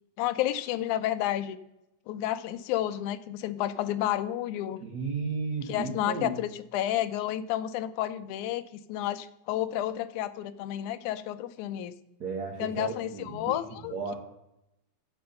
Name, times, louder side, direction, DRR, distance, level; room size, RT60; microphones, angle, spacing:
voice 1, 0.2-1.6 2.1-4.8 5.7-8.6 8.9-11.9 12.6-14.2, left 12 dB, 80° left, 12 dB, 2.1 m, -31 dB
voice 2, 4.8-6.3 12.2-13.6 13.9-14.1, right 4 dB, 70° right, 3 dB, 0.9 m, -34 dB
9.5 x 7.9 x 6.5 m, 0.87 s
omnidirectional pair, 3.5 m